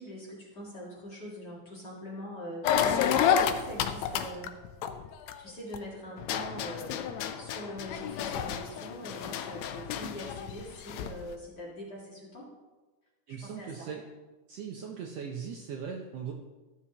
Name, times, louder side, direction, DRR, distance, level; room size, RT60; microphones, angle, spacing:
voice 1, 0.0-4.5 5.4-12.5 13.3-13.9, equal, 40° left, -5 dB, 2.0 m, -43 dB
sound 1, 2.6-5.8 6.2-11.2, left 8 dB, 80° left, 1.7 m, -30 dB
voice 2, 13.3-14.0 14.5-16.3, right 7 dB, 75° right, 1 dB, 1.6 m, -39 dB
14.0 x 7.4 x 2.9 m, 1.2 s
omnidirectional pair, 3.5 m